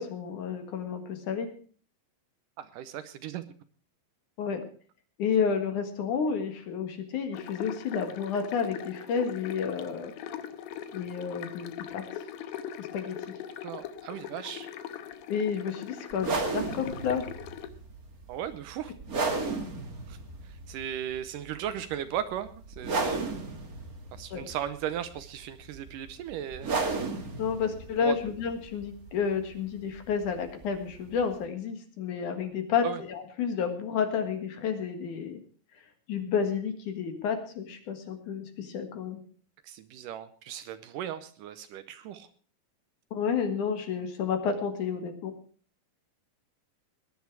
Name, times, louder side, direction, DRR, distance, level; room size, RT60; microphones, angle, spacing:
voice 1, 0.0-1.5 4.4-4.6 5.2-10.1 10.9-12.0 12.8-13.3 15.3-17.3 24.3-24.5 27.4-35.4 36.1-39.2 43.1-45.3, left 6 dB, 60° left, 7 dB, 3.0 m, -31 dB
voice 2, 2.6-3.4 13.6-14.7 18.3-18.9 20.1-20.2 20.7-23.3 24.1-26.7 28.0-28.2 32.8-33.0 39.6-42.3, right 10 dB, 75° right, 12 dB, 2.3 m, -36 dB
sound 1, 7.3-17.7, left 9 dB, 85° left, 2.8 m, -41 dB
sound 2, 16.1-31.4, right 3 dB, 35° right, 1.5 m, -35 dB
19.0 x 10.5 x 4.7 m, 0.43 s
omnidirectional pair, 4.2 m